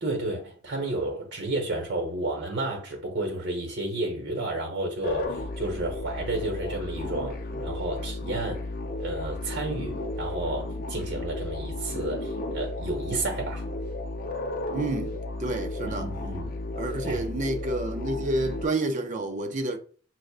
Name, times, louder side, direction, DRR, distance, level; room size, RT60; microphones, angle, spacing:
voice 1, 0.0-8.6 9.0-13.6 15.8-16.6 17.0-17.2, right 2 dB, 60° right, 1.1 m, -31 dB
sound 1, 5.0-18.7, left 2 dB, 45° left, 0.5 m, -34 dB
voice 2, 14.7-16.1 16.8-19.8, right 2 dB, 40° right, 0.5 m, -29 dB
6.1 x 2.1 x 2.4 m
head